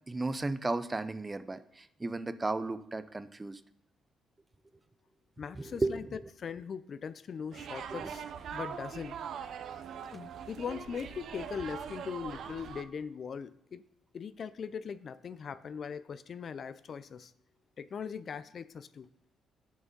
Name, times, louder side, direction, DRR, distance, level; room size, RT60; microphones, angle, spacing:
voice 1, 0.1-3.6 5.5-6.2 7.9-8.1, right 2 dB, 20° right, 13 dB, 0.5 m, -34 dB
voice 2, 5.4-8.2 8.5-9.2 10.0-13.8 14.1-17.3 17.8-19.1, left 6 dB, 50° left, 15 dB, 0.4 m, -40 dB
sound 1, 7.5-12.8, right 8 dB, 70° right, 0.5 m, -42 dB
7.3 x 6.0 x 5.2 m, 0.79 s
cardioid pair, 90°, 0 cm